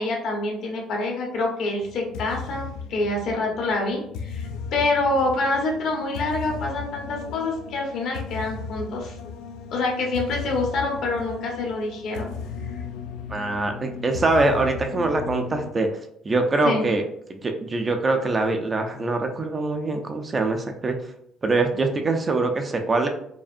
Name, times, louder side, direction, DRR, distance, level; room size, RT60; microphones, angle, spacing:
voice 1, 0.0-9.2 9.7-12.3 16.6-16.9, left 2 dB, 65° left, 0 dB, 1.1 m, -26 dB
sound 1, 1.8-15.7, left 6 dB, 85° left, 0.3 m, -36 dB
voice 2, 13.3-15.9 16.2-17.0 17.3-21.0 21.4-23.1, right 2 dB, 25° right, 5 dB, 0.4 m, -23 dB
4.8 x 2.6 x 2.5 m, 0.75 s
cardioid pair, 140°, 0 cm